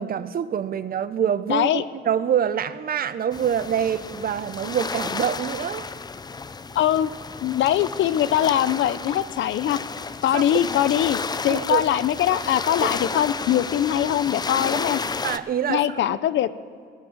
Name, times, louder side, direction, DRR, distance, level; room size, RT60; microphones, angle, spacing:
voice 1, 0.0-5.9 10.3-10.4 11.5-11.8 12.8-12.9 15.2-15.8 16.1-16.2, right 8 dB, 50° right, 14 dB, 0.6 m, -25 dB
voice 2, 1.5-1.8 6.8-7.1 7.4-9.8 10.2-15.0 15.7-16.5, left 11 dB, 70° left, 15 dB, 0.6 m, -22 dB
sound 1, 3.3-15.4, left 4 dB, 20° left, 0.4 m, -32 dB
17.5 x 6.1 x 7.8 m, 2.2 s
cardioid pair, 90°, 20 cm